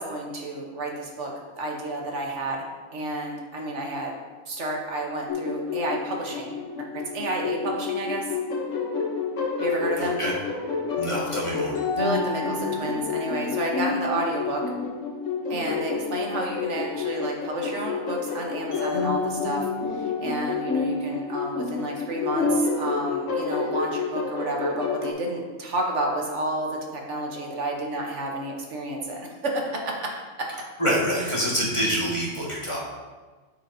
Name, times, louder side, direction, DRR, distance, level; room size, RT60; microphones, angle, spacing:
voice 1, 0.0-2.6 2.9-4.2 4.5-8.2 9.6-10.2 12.0-14.6 15.5-19.7 19.9-30.1 30.4-30.5 31.2-31.3, right 1 dB, 75° right, 0 dB, 1.4 m, -31 dB
sound 1, 5.3-25.1, left 4 dB, 90° left, 1.3 m, -29 dB
voice 2, 11.0-11.7 30.8-32.8, equal, 25° left, -5 dB, 1.6 m, -26 dB
13.0 x 4.6 x 2.7 m, 1.3 s
omnidirectional pair, 1.2 m